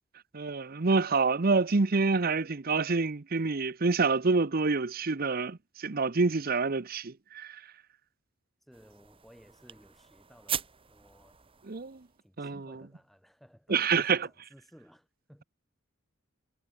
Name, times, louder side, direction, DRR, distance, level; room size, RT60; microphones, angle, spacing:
voice 1, 0.3-7.6 11.7-12.0 12.4-12.7 13.7-14.3, right 4 dB, 45° right, 0.8 m, -27 dB
voice 2, 8.6-11.4 12.2-15.4, equal, ahead, 6.0 m, -58 dB
sound 1, 8.7-12.3, right 8 dB, 25° right, 1.5 m, -41 dB
head